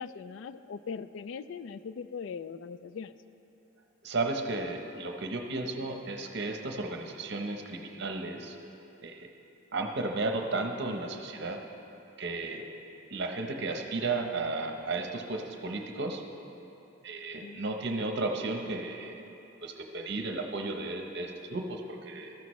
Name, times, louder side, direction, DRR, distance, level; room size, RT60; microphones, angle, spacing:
voice 1, 0.0-3.2 17.4-17.6, left 6 dB, 60° left, 13 dB, 0.3 m, -40 dB
voice 2, 4.0-8.6 9.0-9.3 9.7-11.6 12.2-12.7 13.1-16.2 17.0-19.2 19.6-22.3, right 3 dB, 55° right, 4 dB, 0.9 m, -34 dB
14.5 x 13.5 x 3.1 m, 2.9 s
head